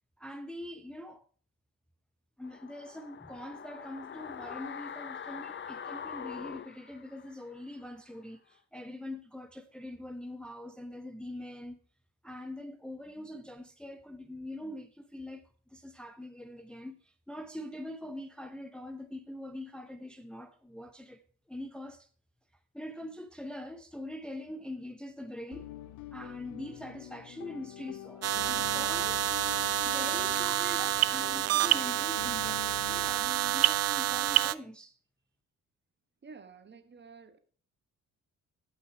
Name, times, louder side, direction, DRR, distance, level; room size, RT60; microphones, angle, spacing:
voice 1, 0.2-1.3 2.4-11.8 12.2-21.2 21.5-22.1 22.7-25.7 26.1-29.3 29.8-35.0, left 1 dB, 5° left, 0.7 m, -43 dB
sound 1, 2.4-7.6 7.9-8.0, left 7 dB, 40° left, 0.8 m, -43 dB
sound 2, 25.5-33.1, left 13 dB, 80° left, 0.8 m, -46 dB
sound 3, 28.2-34.5, right 13 dB, 55° right, 0.5 m, -28 dB
voice 2, 36.2-37.4, right 5 dB, 35° right, 1.3 m, -51 dB
11.5 x 5.8 x 4.6 m
cardioid pair, 90°, 30 cm